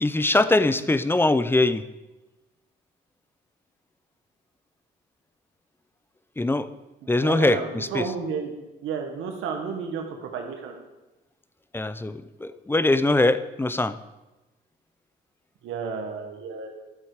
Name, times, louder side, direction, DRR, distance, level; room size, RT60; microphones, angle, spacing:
voice 1, 0.0-1.8 6.4-6.7 7.1-8.1 11.7-14.0, left 2 dB, 10° left, 14 dB, 0.5 m, -22 dB
voice 2, 7.2-8.5 8.8-10.8 15.6-16.8, right 5 dB, 85° right, 4 dB, 1.5 m, -32 dB
12.0 x 7.9 x 4.9 m, 1.0 s
cardioid pair, 90°, 20 cm